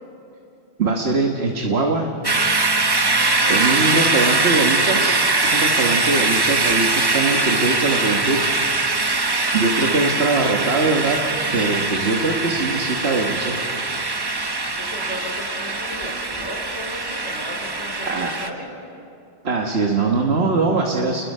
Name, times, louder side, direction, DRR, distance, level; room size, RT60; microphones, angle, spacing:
voice 1, 0.8-2.1 2.4-2.6 3.5-8.8 9.5-11.2 11.5-13.6 18.1-18.3 19.4-21.2, right 3 dB, 65° right, 1 dB, 1.7 m, -22 dB
sound 1, 2.2-18.5, right 3 dB, 25° right, 0.8 m, -22 dB
voice 2, 2.9-4.3 14.6-18.7, left 1 dB, 90° left, -2 dB, 5.3 m, -35 dB
30.0 x 21.5 x 5.5 m, 2.7 s
omnidirectional pair, 1.1 m